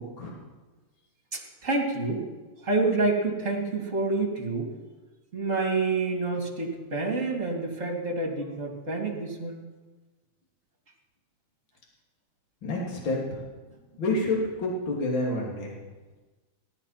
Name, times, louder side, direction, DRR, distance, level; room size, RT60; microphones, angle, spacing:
voice 1, 1.3-2.2 2.6-4.7 5.3-9.6, right 3 dB, 25° right, -2 dB, 3.0 m, -28 dB
voice 2, 12.6-13.4 14.0-15.7, left 2 dB, 40° left, -3 dB, 3.5 m, -28 dB
17.5 x 13.5 x 5.9 m, 1.3 s
omnidirectional pair, 3.6 m